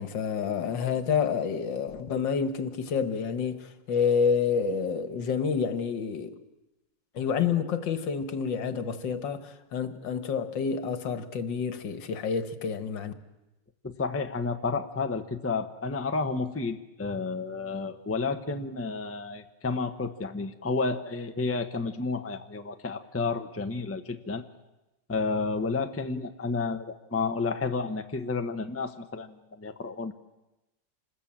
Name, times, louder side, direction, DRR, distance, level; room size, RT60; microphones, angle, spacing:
voice 1, 0.0-6.3 7.2-13.1, left 6 dB, 75° left, 2.1 m, -28 dB
voice 2, 13.8-24.4 25.1-30.1, left 4 dB, 10° left, 0.9 m, -31 dB
27.5 x 20.0 x 8.8 m
omnidirectional pair, 2.0 m